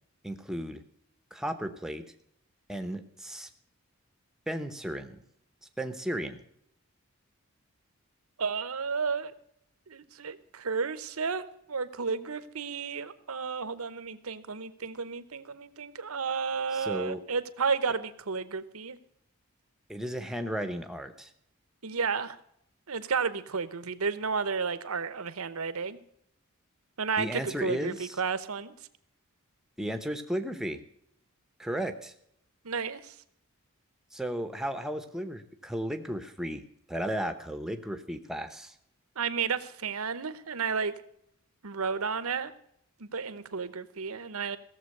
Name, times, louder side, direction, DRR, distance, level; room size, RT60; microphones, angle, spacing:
voice 1, 0.2-0.8 1.3-2.0 2.7-3.5 4.5-5.2 5.8-6.4 16.7-17.2 19.9-21.3 27.2-28.1 29.8-30.8 31.6-32.1 34.1-38.8, equal, ahead, 8 dB, 0.9 m, -34 dB
voice 2, 8.4-9.3 9.9-19.0 21.8-22.4 22.9-26.0 27.0-28.7 32.6-33.2 39.2-40.9 41.6-42.5 43.0-44.6, right 5 dB, 80° right, 14 dB, 0.9 m, -32 dB
16.0 x 7.3 x 6.6 m, 0.72 s
head